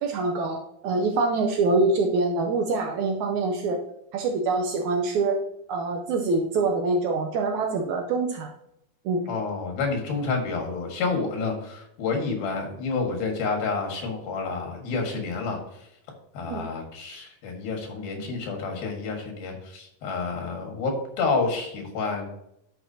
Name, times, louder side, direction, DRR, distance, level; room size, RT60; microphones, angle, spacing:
voice 1, 0.0-0.6 0.8-3.8 4.1-5.4 5.7-8.5 9.1-9.2 16.5-16.6, right 3 dB, 75° right, 3 dB, 1.8 m, -25 dB
voice 2, 9.3-15.9 16.4-22.3, left 4 dB, 90° left, 2 dB, 3.6 m, -29 dB
12.0 x 6.0 x 2.8 m, 0.79 s
omnidirectional pair, 4.1 m